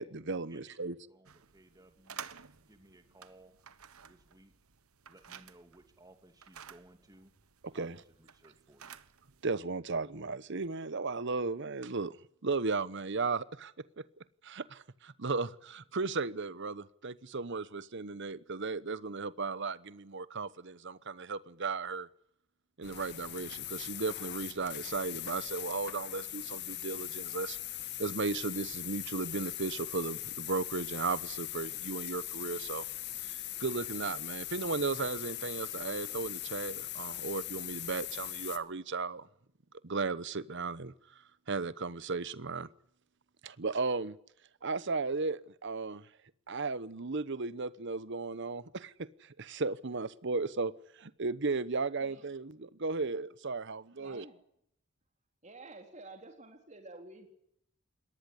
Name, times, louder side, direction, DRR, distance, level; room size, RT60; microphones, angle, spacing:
voice 1, 0.0-1.0 7.6-8.0 9.4-12.2 12.4-14.0 14.4-22.1 22.8-27.6 28.0-32.9 33.2-39.3 39.8-40.9 41.5-42.7 43.4-44.2 44.6-46.0 46.5-54.2, right 4 dB, 55° right, 17 dB, 1.0 m, -35 dB
voice 2, 1.1-2.3 2.6-3.6 4.0-4.5 5.1-7.3 7.7-9.0, right 1 dB, 20° right, 7 dB, 2.8 m, -59 dB
sound 1, 1.3-9.5, right 8 dB, 90° right, 1.3 m, -52 dB
sound 2, 22.8-38.6, left 14 dB, 50° left, 1.8 m, -40 dB
voice 3, 52.0-52.3 53.9-54.4 55.4-57.3, right 2 dB, 35° right, 4 dB, 3.9 m, -51 dB
22.5 x 19.0 x 9.9 m, 0.72 s
head